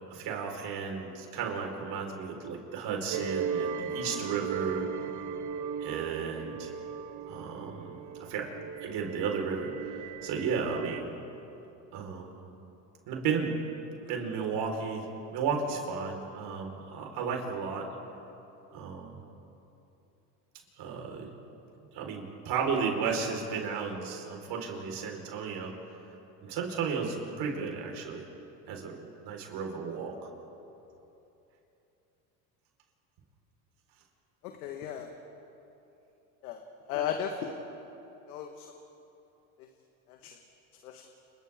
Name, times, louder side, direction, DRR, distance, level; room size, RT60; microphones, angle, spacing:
voice 1, 0.1-4.9 5.8-6.7 7.3-8.5 8.8-11.1 11.9-12.4 13.1-13.5 14.1-15.1 15.3-17.9 18.7-19.2 20.8-21.3 21.8-25.7 26.4-28.2 28.7-30.1, right 5 dB, 60° right, 1 dB, 4.7 m, -34 dB
sound 1, 3.1-11.0, right 7 dB, 45° right, 1.1 m, -37 dB
voice 2, 34.4-35.1 36.4-36.6 36.9-37.5 38.3-38.7 40.2-40.4 40.8-41.0, left 8 dB, 85° left, 3 dB, 1.7 m, -35 dB
30.0 x 28.5 x 3.7 m, 2.9 s
supercardioid pair, 90°, 43 cm